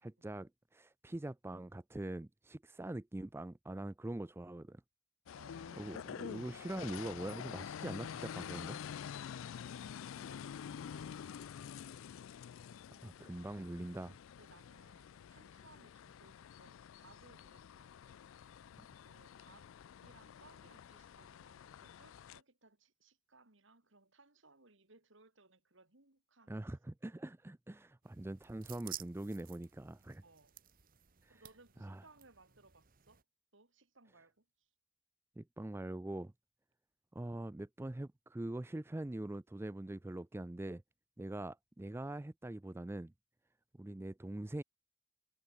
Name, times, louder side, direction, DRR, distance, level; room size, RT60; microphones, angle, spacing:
voice 1, 0.0-4.8 5.8-8.8 13.0-14.2 26.5-30.2 31.2-31.4 31.8-32.0 35.4-36.3 37.1-40.8 41.2-43.1 43.8-44.6, right 1 dB, 10° right, 0.3 m, -43 dB
sound 1, 5.3-22.4, left 8 dB, 70° left, 0.3 m, -48 dB
voice 2, 5.3-6.1 9.8-11.6 14.0-18.3 19.0-19.7 20.0-26.6 30.2-30.6 31.3-33.2 33.5-34.7, right 3 dB, 60° right, 2.7 m, -65 dB
sound 2, 28.0-33.2, right 13 dB, 40° right, 1.3 m, -53 dB
head